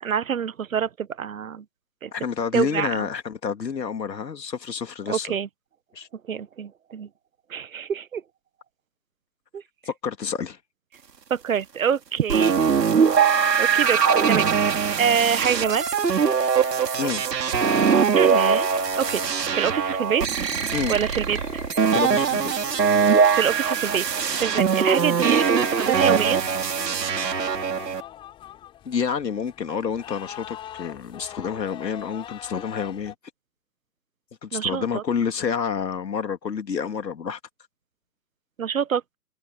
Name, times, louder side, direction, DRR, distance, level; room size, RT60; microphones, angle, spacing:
voice 1, 0.0-1.6 2.0-2.1 2.5-3.1 5.1-5.5 6.3-7.1 7.5-8.2 9.5-9.6 11.3-12.6 13.6-14.7 15.0-15.8 18.1-18.7 19.0-19.2 19.5-20.3 20.9-21.6 23.3-24.0 24.4-26.4 34.5-35.0 38.6-39.2, right 7 dB, 55° right, 1.5 m, -26 dB
voice 2, 2.1-5.3 5.9-6.1 9.9-10.6 17.0-17.2 20.7-21.0 21.9-22.5 28.8-33.1 34.4-37.4, left 6 dB, 85° left, 3.2 m, -28 dB
sound 1, 12.3-28.0, right 6 dB, 80° right, 3.3 m, -22 dB
sound 2, 17.9-33.1, left 12 dB, 10° left, 5.7 m, -42 dB
hypercardioid pair, 170°, 49 cm